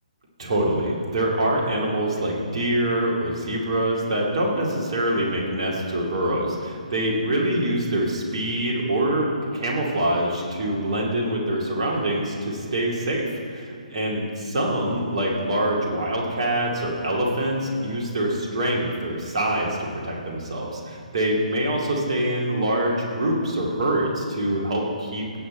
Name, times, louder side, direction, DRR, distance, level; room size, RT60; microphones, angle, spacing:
voice 1, 0.4-9.3 9.5-13.2 13.5-13.7 13.9-25.4, right 1 dB, 45° right, -2 dB, 2.4 m, -25 dB
17.0 x 7.2 x 4.4 m, 2.4 s
figure-of-eight pair, 135°, 4 cm